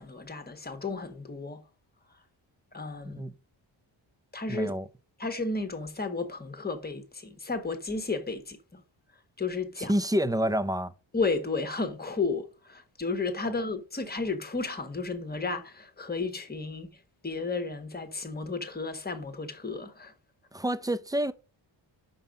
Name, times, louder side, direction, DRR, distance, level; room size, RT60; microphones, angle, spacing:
voice 1, 0.0-1.6 2.7-3.2 4.3-4.7 5.2-8.8 9.4-9.9 11.1-20.1, left 3 dB, 20° left, 1.3 m, -33 dB
voice 2, 4.5-4.8 9.8-10.9 20.5-21.3, equal, 10° right, 0.5 m, -28 dB
5.6 x 5.5 x 5.2 m
cardioid pair, 100°, 45 cm